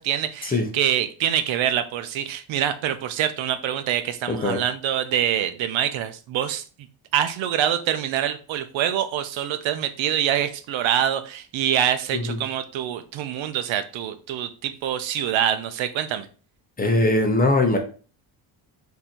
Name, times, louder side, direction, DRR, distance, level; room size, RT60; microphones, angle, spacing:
voice 1, 0.0-6.6 7.1-16.3, right 10 dB, 75° right, 10 dB, 0.6 m, -25 dB
voice 2, 4.3-4.6 12.1-12.4 16.8-17.8, left 2 dB, 20° left, 2 dB, 0.7 m, -21 dB
3.8 x 2.8 x 4.3 m, 0.37 s
cardioid pair, 160°, 47 cm